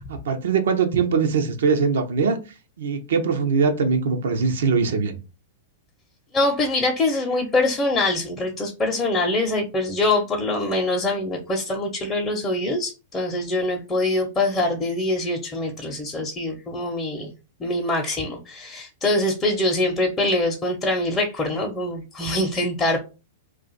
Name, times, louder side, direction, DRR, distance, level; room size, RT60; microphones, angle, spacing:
voice 1, 0.1-2.4 2.8-5.2, right 5 dB, 75° right, 5 dB, 0.7 m, -21 dB
voice 2, 6.3-17.3 17.6-23.0, left 2 dB, 20° left, -1 dB, 0.7 m, -24 dB
2.5 x 2.4 x 3.9 m, 0.30 s
hypercardioid pair, 110°, 0 cm